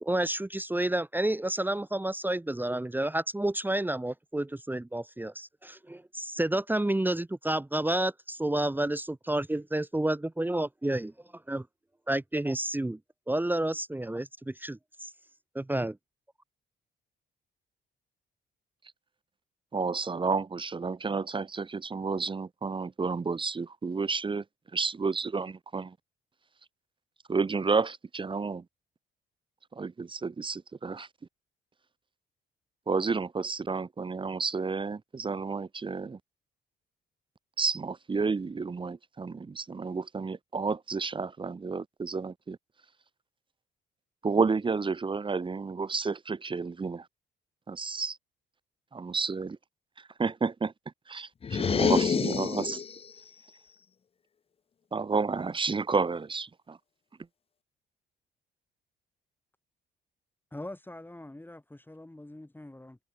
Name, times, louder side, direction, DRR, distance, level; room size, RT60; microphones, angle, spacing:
voice 1, 0.0-11.1 11.5-11.6 12.1-13.0 13.3-15.1 15.5-16.0, right 1 dB, 10° right, 1.2 m, -30 dB
voice 2, 19.7-24.4 24.7-26.0 27.3-28.6 29.7-31.1 32.9-36.2 37.6-42.6 44.2-47.1 47.7-48.2 48.9-49.6 50.0-50.7 51.1-52.8 54.9-56.8, right 4 dB, 25° right, 0.9 m, -31 dB
sound 1, 51.4-53.1, left 6 dB, 30° left, 0.5 m, -27 dB
voice 3, 60.5-63.0, left 1 dB, 10° left, 6.6 m, -44 dB
cardioid pair, 90°, 20 cm